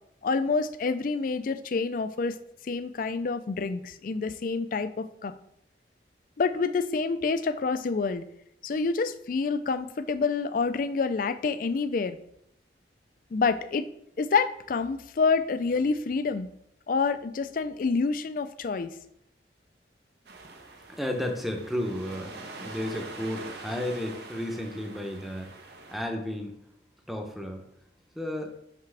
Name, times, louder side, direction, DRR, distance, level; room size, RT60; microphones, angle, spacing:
voice 1, 0.2-2.4 2.6-5.3 6.4-8.3 8.6-12.2 13.3-13.9 14.2-16.5 16.9-18.9, left 4 dB, 50° left, 12 dB, 0.4 m, -27 dB
sound 1, 20.3-26.0, right 3 dB, 65° right, 0.9 m, -44 dB
voice 2, 20.9-25.5 25.9-26.6 27.1-27.6 28.2-28.5, left 1 dB, ahead, 3 dB, 0.7 m, -33 dB
5.8 x 5.8 x 3.3 m, 0.75 s
head